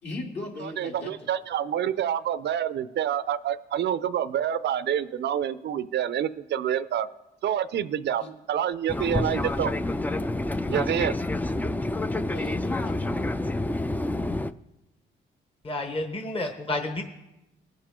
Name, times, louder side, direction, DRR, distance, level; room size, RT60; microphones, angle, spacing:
voice 1, 0.0-1.1 8.2-8.3 9.2-9.4 12.3-13.2 16.4-16.5, left 2 dB, 60° left, -2 dB, 3.1 m, -37 dB
voice 2, 0.6-7.1 7.4-9.7 10.7-11.1, right 10 dB, 60° right, 15 dB, 0.5 m, -27 dB
Fixed-wing aircraft airplane, 8.9-14.5, left 2 dB, 10° left, 0.4 m, -28 dB
voice 3, 15.6-17.0, left 2 dB, 30° left, 5 dB, 1.2 m, -30 dB
19.5 x 7.4 x 3.7 m, 0.93 s
cardioid pair, 90°, 20 cm